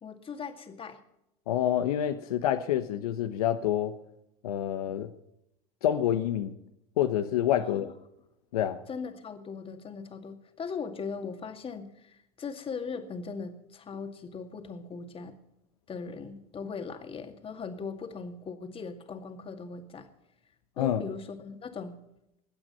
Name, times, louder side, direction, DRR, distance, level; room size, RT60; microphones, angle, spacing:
voice 1, 0.0-1.0 7.7-7.9 8.9-15.4 15.9-20.1 20.8-22.0, left 5 dB, 30° left, 2.2 m, -39 dB
voice 2, 1.5-4.0 4.4-5.1 5.8-6.5 7.0-7.9 8.5-8.8 20.8-21.0, left 11 dB, 75° left, 1.0 m, -27 dB
21.0 x 8.7 x 5.6 m
hypercardioid pair, 85°, 19 cm